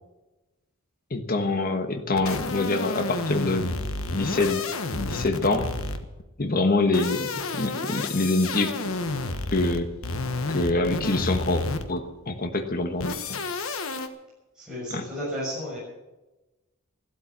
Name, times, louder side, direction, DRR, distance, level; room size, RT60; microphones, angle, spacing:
voice 1, 1.1-3.7 4.1-4.6 4.9-5.7 6.4-8.8 9.5-9.9 10.5-13.4 14.9-15.0, left 2 dB, 45° left, 6 dB, 1.3 m, -25 dB
sound 1, 2.2-6.2 6.8-12.1 13.0-14.1, left 3 dB, 70° left, 1.3 m, -30 dB
voice 2, 14.5-15.8, equal, 5° right, -9 dB, 6.9 m, -33 dB
14.5 x 12.5 x 7.4 m, 1.1 s
head